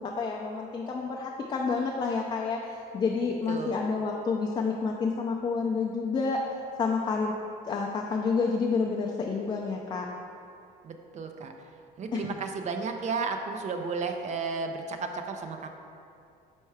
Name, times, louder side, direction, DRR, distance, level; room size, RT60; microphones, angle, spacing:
voice 1, 0.0-6.4 6.8-7.3 7.7-10.1 12.1-12.3, left 4 dB, 30° left, 0 dB, 0.4 m, -29 dB
voice 2, 10.8-11.5 12.0-15.7, right 4 dB, 45° right, 5 dB, 0.5 m, -33 dB
4.6 x 4.4 x 4.7 m, 2.5 s
cardioid pair, 110°, 17 cm